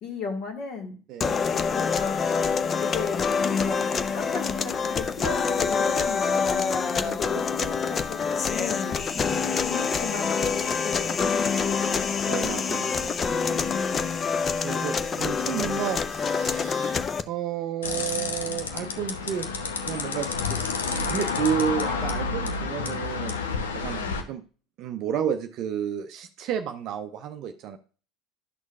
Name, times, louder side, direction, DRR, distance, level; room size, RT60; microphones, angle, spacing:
voice 1, 0.0-1.0 1.4-2.1 2.8-3.2 3.5-3.8 4.1-9.2 9.6-12.1 13.2-14.1 23.9-24.2, left 5 dB, 50° left, 4 dB, 1.6 m, -35 dB
voice 2, 1.1-1.4 7.0-7.2 7.6-7.7 9.3-9.7 12.3-13.2 14.6-19.5 19.9-20.7 21.1-23.3 23.7-24.0 24.3-24.4 24.8-27.8, right 9 dB, 50° right, 7 dB, 0.5 m, -31 dB
sound 1, 1.2-17.2, left 5 dB, 30° left, 0.5 m, -26 dB
sound 2, 17.8-24.2, left 4 dB, 75° left, 0.8 m, -29 dB
11.0 x 6.2 x 2.4 m, 0.39 s
figure-of-eight pair, 70°, 0 cm